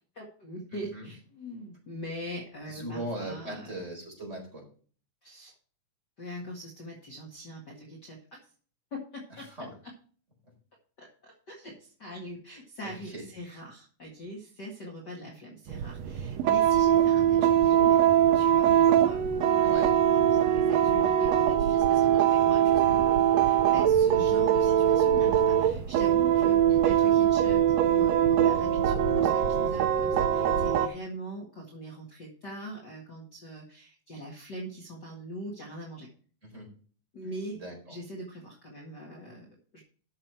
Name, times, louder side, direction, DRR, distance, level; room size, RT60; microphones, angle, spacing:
voice 1, 0.1-3.8 5.2-5.5 6.2-8.4 8.9-9.5 11.0-18.0 18.3-19.6 20.1-36.1 37.1-37.6 37.9-39.5 39.7-39.8, equal, 35° left, -2 dB, 2.2 m, -42 dB
voice 2, 0.7-1.1 2.6-4.6 9.3-9.8 12.8-13.2 19.6-20.0 36.4-36.7 37.5-38.0, right 1 dB, 20° right, -1 dB, 4.5 m, -39 dB
sound 1, 15.7-30.9, right 10 dB, 70° right, 1.7 m, -22 dB
13.0 x 6.6 x 4.5 m, 0.43 s
omnidirectional pair, 3.6 m